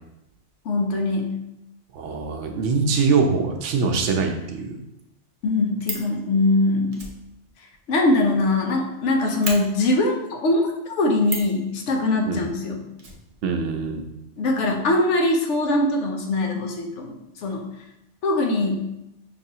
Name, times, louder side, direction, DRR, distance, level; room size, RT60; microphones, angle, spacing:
voice 1, 0.7-1.3 5.4-7.0 7.9-12.8 14.4-17.6 18.2-18.9, left 2 dB, 85° left, 2 dB, 1.0 m, -22 dB
voice 2, 1.9-4.8 12.3-12.5 13.4-14.0, right 4 dB, 85° right, 4 dB, 0.9 m, -23 dB
Fire, 5.4-6.1 6.9-8.7 9.0-9.1 9.4-9.6 11.2-11.6 13.0-13.9 14.1-14.2 14.4-14.6, right 3 dB, 40° right, 0.6 m, -34 dB
5.4 x 2.4 x 2.7 m, 0.89 s
omnidirectional pair, 1.2 m